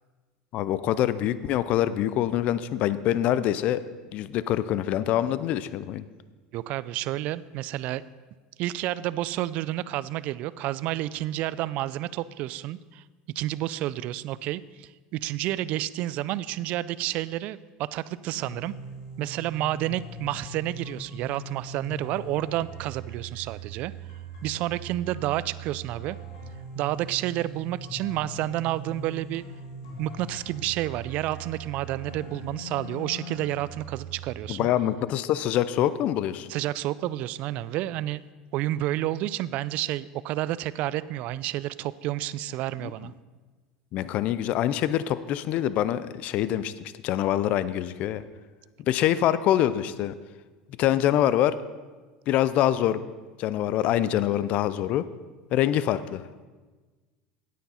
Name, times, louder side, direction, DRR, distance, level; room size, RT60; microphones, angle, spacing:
voice 1, 0.5-3.8 4.1-6.0 34.5-36.5 42.8-43.1 43.9-46.7 47.0-48.2 48.9-50.1 50.8-51.6 52.3-53.0 53.4-55.1 55.5-56.2, left 12 dB, 55° left, 15 dB, 0.4 m, -25 dB
voice 2, 6.5-8.0 8.6-13.0 13.4-18.7 19.2-23.9 24.4-26.2 26.7-29.4 30.0-34.7 36.5-38.2 38.5-43.1, right 14 dB, 55° right, 18 dB, 0.3 m, -30 dB
sound 1, 18.3-34.3, right 2 dB, 85° left, 2.2 m, -41 dB
9.3 x 9.3 x 4.3 m, 1.3 s
supercardioid pair, 115°, 3 cm